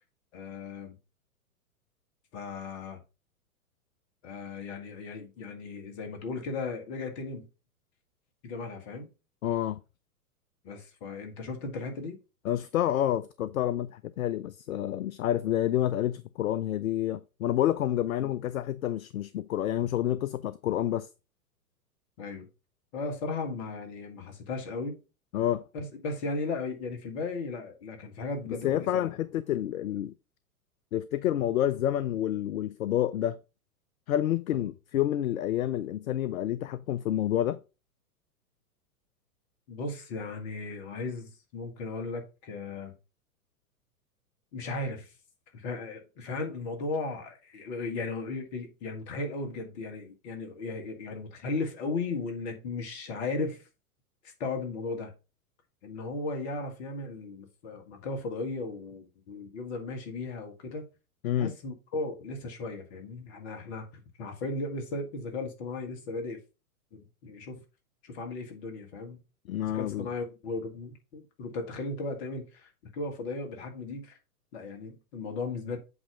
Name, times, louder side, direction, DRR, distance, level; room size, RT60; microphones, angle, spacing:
voice 1, 0.3-1.0 2.3-3.0 4.2-7.5 8.4-9.1 10.6-12.2 18.2-18.3 22.2-22.5 22.9-25.0 25.7-29.1 34.6-34.7 39.7-42.9 44.5-45.1 45.5-53.6 54.4-55.1 55.8-60.8 61.4-66.4 66.9-67.6 68.0-69.2 69.6-74.2 74.5-75.8, left 3 dB, 45° left, 1.8 m, -36 dB
voice 2, 9.4-9.8 12.4-21.1 25.3-25.6 28.5-30.1 30.9-33.4 34.1-37.6 61.2-61.5 69.5-70.1, left 12 dB, 65° left, 0.5 m, -29 dB
7.9 x 2.9 x 4.8 m
figure-of-eight pair, 105°, 45 cm